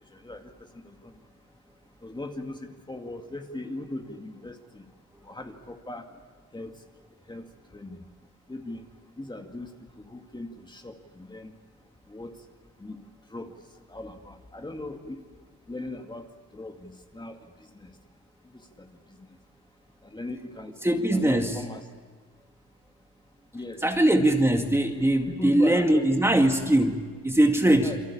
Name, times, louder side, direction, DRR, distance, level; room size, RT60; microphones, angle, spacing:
voice 1, 0.1-1.2 2.0-4.9 5.2-6.1 6.5-6.8 7.3-8.1 8.5-8.9 9.2-11.5 12.1-12.4 12.8-13.0 13.3-13.5 13.9-15.2 15.7-17.9 18.5-19.4 20.0-20.7 21.1-21.9 23.5-24.0 25.3-26.1 27.6-28.0, left 2 dB, 15° left, 4 dB, 2.3 m, -39 dB
voice 2, 20.8-21.5 23.8-28.0, right 1 dB, 10° right, 4 dB, 2.1 m, -21 dB
28.5 x 23.0 x 8.7 m, 1.5 s
cardioid pair, 90°, 30 cm